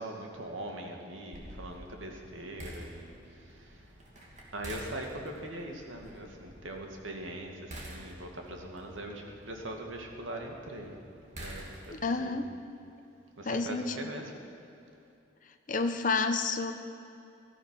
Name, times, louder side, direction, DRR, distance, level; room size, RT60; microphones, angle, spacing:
voice 1, 0.0-3.9 4.5-10.9 11.4-12.4 13.4-14.3, right 1 dB, 80° right, 1 dB, 2.2 m, -41 dB
sound 1, 1.3-12.2, right 1 dB, 35° right, 2.6 m, -49 dB
voice 2, 11.9-12.5 13.4-14.1 15.4-16.7, left 4 dB, 40° left, 7 dB, 0.8 m, -30 dB
18.0 x 13.5 x 5.9 m, 2.8 s
head